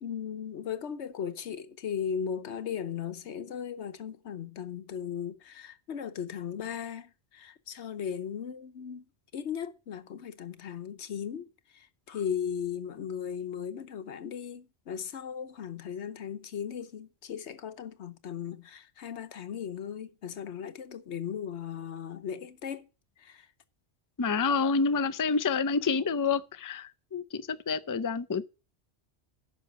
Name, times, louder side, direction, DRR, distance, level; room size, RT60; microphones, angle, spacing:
voice 1, 0.0-9.1 9.3-11.5 11.7-22.9 23.2-23.5, left 8 dB, 85° left, 1.2 m, -37 dB
voice 2, 24.2-28.5, left 5 dB, 25° left, 0.4 m, -28 dB
9.9 x 6.1 x 7.6 m
omnidirectional pair, 1.1 m